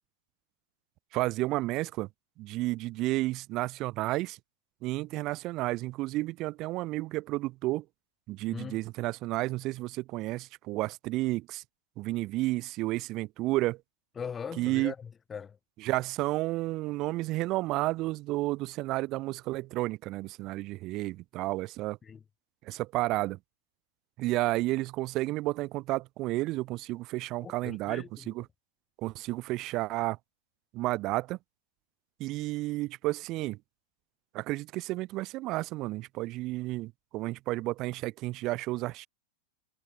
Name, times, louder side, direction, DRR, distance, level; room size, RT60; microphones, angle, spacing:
voice 1, 1.1-2.1 2.4-4.4 4.8-7.8 8.3-11.6 12.0-13.8 14.6-14.9 15.8-22.0 22.6-23.4 24.2-28.4 29.0-30.2 30.7-31.4 32.2-33.6 34.3-39.1, right 19 dB, 40° right, 3.0 m, -31 dB
voice 2, 8.5-8.8 14.2-15.6 22.0-22.2 27.4-28.3, left 6 dB, 20° left, 4.4 m, -40 dB
figure-of-eight pair, 90°, 0 cm